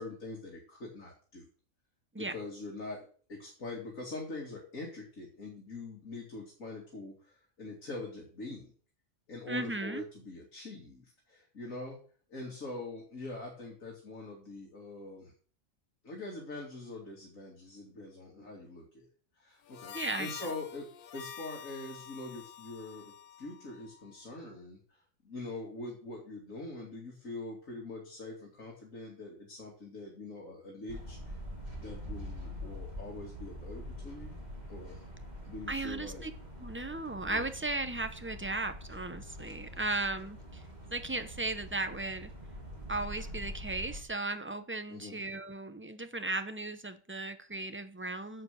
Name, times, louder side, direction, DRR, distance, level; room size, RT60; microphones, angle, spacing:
voice 1, 0.0-1.5 2.2-8.7 9.3-12.0 12.3-15.3 16.0-19.1 19.4-31.4 31.8-34.4 34.7-35.1 35.4-36.2 37.3-37.5 39.7-40.1 44.9-45.2, left 2 dB, 80° left, -1 dB, 2.9 m, -44 dB
voice 2, 9.5-10.0 19.9-20.3 35.7-36.3 36.6-40.6 40.9-42.3 42.9-48.4, right 2 dB, 10° right, 9 dB, 0.7 m, -36 dB
Harmonica, 19.7-24.3, left 9 dB, 55° left, 0.6 m, -47 dB
sound 1, 30.9-44.0, equal, 30° right, 2.4 m, -44 dB
10.5 x 7.2 x 6.4 m, 0.43 s
omnidirectional pair, 1.4 m